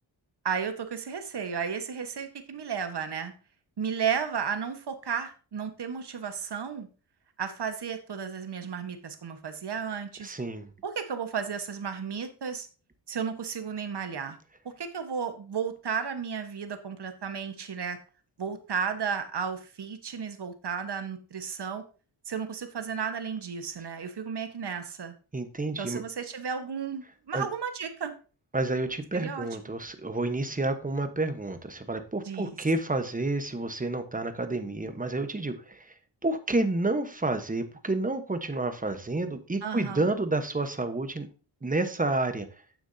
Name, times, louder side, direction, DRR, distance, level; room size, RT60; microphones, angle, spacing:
voice 1, 0.4-3.3 3.8-6.9 7.4-10.3 10.8-12.7 13.1-14.4 14.8-18.0 18.4-21.8 22.2-25.1 25.8-28.1 29.1-29.5 32.2-32.6 39.6-40.1, right 6 dB, 55° right, 7 dB, 1.4 m, -33 dB
voice 2, 10.2-10.7 25.3-26.0 27.3-27.4 28.5-35.9 36.2-41.3 41.6-42.5, right 2 dB, 15° right, 9 dB, 1.1 m, -29 dB
9.6 x 7.0 x 2.8 m, 0.36 s
cardioid pair, 75°, 47 cm